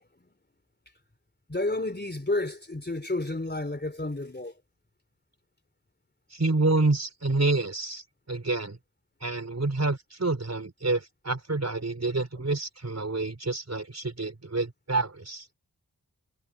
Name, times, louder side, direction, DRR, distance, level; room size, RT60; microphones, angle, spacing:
voice 1, 1.5-4.5, left 2 dB, 25° left, 3.4 m, -30 dB
voice 2, 6.3-8.8 9.2-15.5, right 2 dB, 45° right, 5.0 m, -28 dB
cardioid pair, 40°, 37 cm